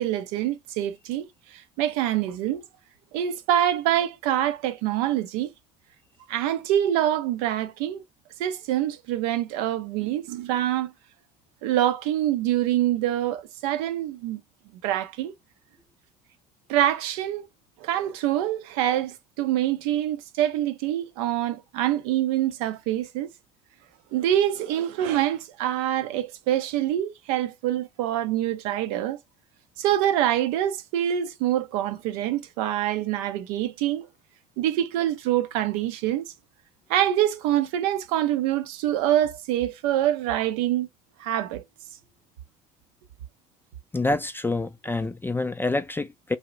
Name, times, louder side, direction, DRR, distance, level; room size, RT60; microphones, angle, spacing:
voice 1, 0.0-2.6 3.1-5.5 6.3-8.0 8.4-10.9 11.6-14.4 14.8-15.3 16.7-17.5 17.8-23.3 24.1-29.2 29.8-34.1 34.6-36.2 36.9-40.9 41.2-41.6, right 12 dB, 70° right, 0.6 m, -25 dB
voice 2, 43.9-46.4, left 2 dB, 10° left, 0.3 m, -27 dB
2.7 x 2.1 x 3.0 m
hypercardioid pair, 60°, 19 cm